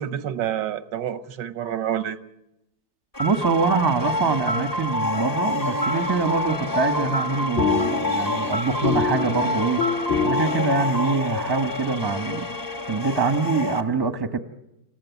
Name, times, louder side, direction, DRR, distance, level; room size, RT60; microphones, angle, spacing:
voice 1, 0.0-2.2, right 10 dB, 85° right, 12 dB, 1.6 m, -28 dB
sound 1, 3.1-13.8, left 2 dB, 15° left, 1.2 m, -27 dB
voice 2, 3.2-9.8 10.2-12.5 12.9-14.4, right 4 dB, 15° right, 9 dB, 0.9 m, -24 dB
sound 2, 7.0-11.3, left 5 dB, 45° left, 1.6 m, -27 dB
27.5 x 15.5 x 8.3 m, 0.89 s
omnidirectional pair, 1.9 m